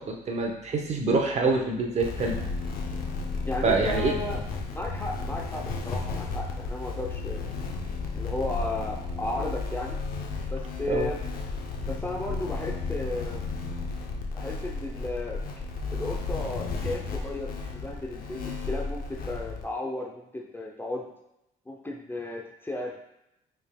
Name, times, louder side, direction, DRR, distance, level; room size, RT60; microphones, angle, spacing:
voice 1, 0.1-2.4 3.6-4.1 10.9-11.1, right 3 dB, 40° right, 2 dB, 0.7 m, -26 dB
sound 1, 2.0-19.7, left 3 dB, 60° left, 0.6 m, -33 dB
voice 2, 3.5-4.4 4.7-7.5 8.2-10.0 10.5-11.2 11.8-13.4 14.3-15.6 15.9-21.0 21.7-22.9, left 2 dB, 10° left, 0 dB, 0.5 m, -34 dB
5.1 x 3.4 x 2.2 m, 0.84 s
cardioid pair, 110°, 17 cm